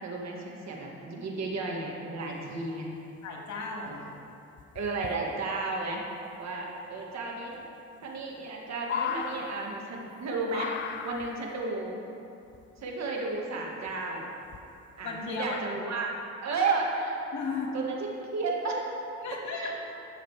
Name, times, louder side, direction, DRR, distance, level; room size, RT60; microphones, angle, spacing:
voice 1, 0.0-2.9 3.8-4.0 4.7-6.0 6.4-7.5 8.0-10.7 11.0-12.0 12.8-14.2 15.0-16.1 16.4-17.2 17.7-18.8 19.6-19.7, right 3 dB, 60° right, -1 dB, 1.7 m, -33 dB
voice 2, 3.2-4.0 15.0-15.6 17.3-17.8 19.2-19.7, left 4 dB, 70° left, -1 dB, 1.8 m, -35 dB
sound 1, 3.5-3.6 3.9-4.2 4.6-5.1 6.7-6.8 7.0-7.1 7.6-7.7 8.0-10.2 10.5-11.6 12.5-13.2 13.9-14.0 14.4-14.8 15.3-15.5, left 7 dB, 40° left, 0.4 m, -37 dB
13.5 x 6.4 x 3.3 m, 2.6 s
cardioid pair, 90°, 30 cm